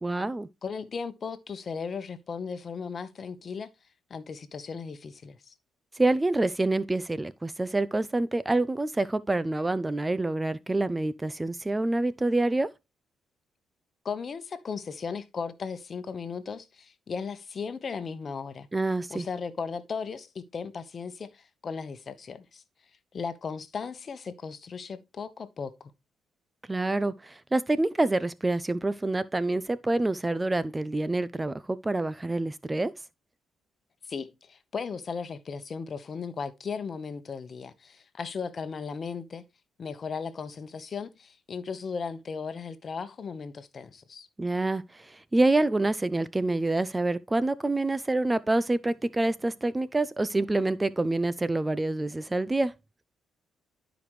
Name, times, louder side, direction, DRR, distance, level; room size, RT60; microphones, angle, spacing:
voice 1, 0.0-0.5 5.9-12.7 18.7-19.3 26.7-32.9 44.4-52.7, right 2 dB, 15° right, 0.4 m, -27 dB
voice 2, 0.6-3.7 4.1-5.5 14.0-18.7 19.1-22.6 23.1-25.9 34.1-39.4 39.8-44.3, left 5 dB, 45° left, 1.0 m, -36 dB
12.0 x 5.1 x 3.1 m
cardioid pair, 90°, 0 cm